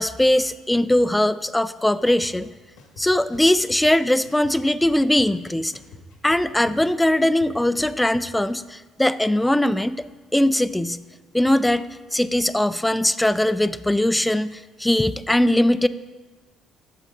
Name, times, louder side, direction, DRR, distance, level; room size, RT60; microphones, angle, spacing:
voice 1, 0.0-2.5 3.0-5.8 6.2-10.1 10.3-11.0 11.3-11.9 12.1-15.9, left 1 dB, 10° left, 15 dB, 0.3 m, -20 dB
sound 1, 2.2-2.3 2.8-3.8 4.2-5.4 5.7-8.2, left 4 dB, 85° left, 1.3 m, -45 dB
8.1 x 6.4 x 3.9 m, 1.3 s
hypercardioid pair, 65°, 0 cm